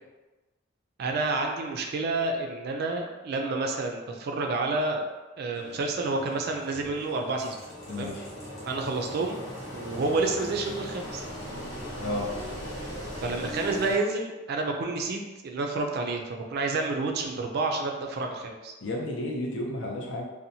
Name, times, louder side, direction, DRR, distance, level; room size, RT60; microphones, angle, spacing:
voice 1, 1.0-5.0 5.4-7.6 7.9-8.1 8.7-9.4 9.7-11.2 13.2-18.7, right 3 dB, 55° right, 3 dB, 0.3 m, -29 dB
Engine, 5.5-14.0, equal, 85° left, 1.0 m, -39 dB
voice 2, 7.9-8.3 12.0-12.3 18.8-20.2, left 1 dB, 70° left, -1 dB, 0.5 m, -32 dB
2.7 x 2.1 x 2.7 m, 1.1 s
head